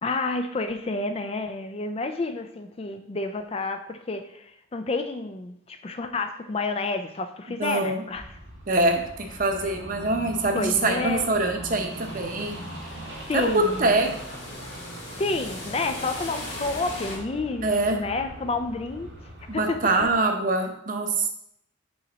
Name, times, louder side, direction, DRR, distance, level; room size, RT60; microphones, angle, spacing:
voice 1, 0.0-8.3 9.6-9.7 10.6-11.3 13.3-14.0 14.5-14.7 15.2-19.1 19.5-20.1, left 3 dB, 30° left, 7 dB, 0.4 m, -30 dB
voice 2, 7.6-8.0 8.7-12.6 13.3-14.1 17.6-18.0 19.5-21.3, right 2 dB, 45° right, 4 dB, 0.8 m, -24 dB
sound 1, 8.1-20.2, right 1 dB, 75° right, 2.2 m, -41 dB
sound 2, 11.9-17.2, left 2 dB, 55° left, 1.9 m, -39 dB
5.6 x 5.4 x 4.0 m, 0.73 s
head